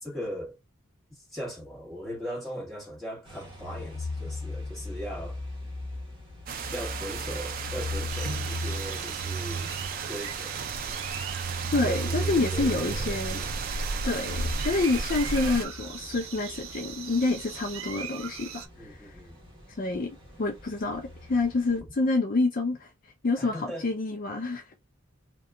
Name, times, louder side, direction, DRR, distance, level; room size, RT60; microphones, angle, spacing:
voice 1, 0.0-0.6 1.1-5.4 6.7-10.7 11.8-13.5 18.8-19.4 21.8-21.9 23.4-23.9, equal, ahead, 1.5 m, -39 dB
sound 1, 3.3-21.8, right 1 dB, 25° right, 1.1 m, -38 dB
sound 2, 6.5-15.6, right 4 dB, 45° right, 0.4 m, -34 dB
sound 3, 8.1-18.7, right 7 dB, 80° right, 0.7 m, -41 dB
voice 2, 11.7-13.4 14.0-19.1 19.8-22.9 23.2-24.6, left 3 dB, 45° left, 0.4 m, -28 dB
2.7 x 2.3 x 3.6 m
head